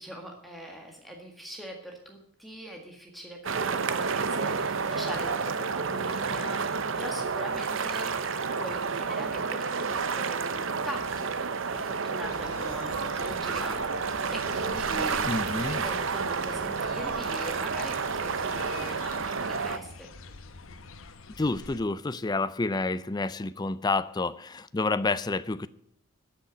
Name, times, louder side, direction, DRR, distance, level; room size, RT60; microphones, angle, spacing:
voice 1, 0.0-8.3 8.6-14.1 14.3-15.4 15.7-20.1, equal, ahead, 1 dB, 1.7 m, -41 dB
sound 1, 3.4-19.8, right 5 dB, 60° right, 0.7 m, -30 dB
sound 2, 12.2-21.8, left 3 dB, 70° left, 1.0 m, -46 dB
voice 2, 15.2-15.9 21.4-25.7, left 3 dB, 20° left, 14 dB, 0.4 m, -29 dB
13.0 x 6.5 x 9.1 m, 0.73 s
head